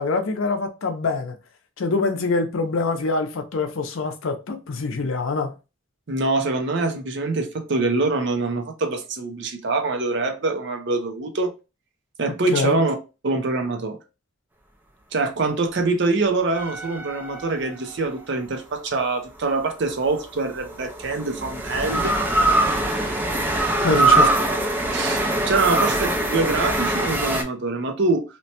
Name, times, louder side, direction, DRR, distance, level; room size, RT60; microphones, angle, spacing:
voice 1, 0.0-1.4 1.8-5.5 12.5-12.8 23.8-24.3, left 3 dB, 75° left, 0.5 m, -24 dB
voice 2, 6.1-11.5 12.2-13.0 13.2-14.0 15.1-22.1 23.9-24.3 24.9-28.2, right 3 dB, 60° right, 0.6 m, -24 dB
sound 1, 16.5-18.0 19.9-27.4, right 2 dB, 10° right, 0.4 m, -22 dB
2.9 x 2.1 x 2.8 m
head